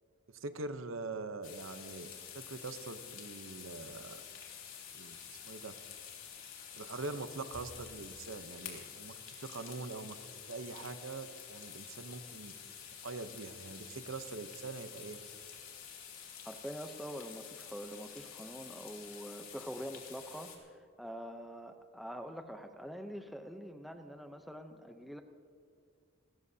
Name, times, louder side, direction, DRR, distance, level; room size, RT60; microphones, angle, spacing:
voice 1, 0.3-2.1 2.3-4.2 4.9-5.2 5.4-5.7 6.7-10.2 10.5-12.5 13.0-15.2, right 3 dB, 75° right, 10 dB, 0.8 m, -43 dB
sound 1, 1.4-20.6, left 8 dB, 90° left, 2.7 m, -49 dB
voice 2, 16.4-25.2, equal, ahead, 6 dB, 0.6 m, -45 dB
27.5 x 14.5 x 2.8 m, 2.3 s
head